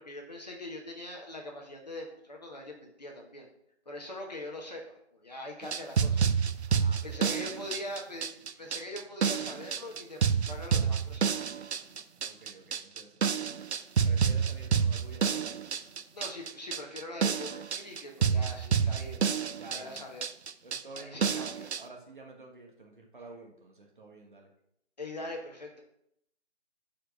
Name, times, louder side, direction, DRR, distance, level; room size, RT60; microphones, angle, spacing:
voice 1, 0.0-3.5 3.8-6.3 7.0-11.4 16.1-19.4 19.7-20.2 20.9-21.7 25.0-25.8, left 1 dB, 35° left, 1 dB, 1.1 m, -42 dB
sound 1, 5.6-21.8, right 6 dB, 65° right, 0.5 m, -29 dB
voice 2, 6.7-7.3 12.2-13.2 14.0-15.6 19.5-20.1 20.6-21.4 21.8-24.5, right 2 dB, 45° right, 1 dB, 1.3 m, -50 dB
4.9 x 4.5 x 6.1 m, 0.75 s
figure-of-eight pair, 165°, 35 cm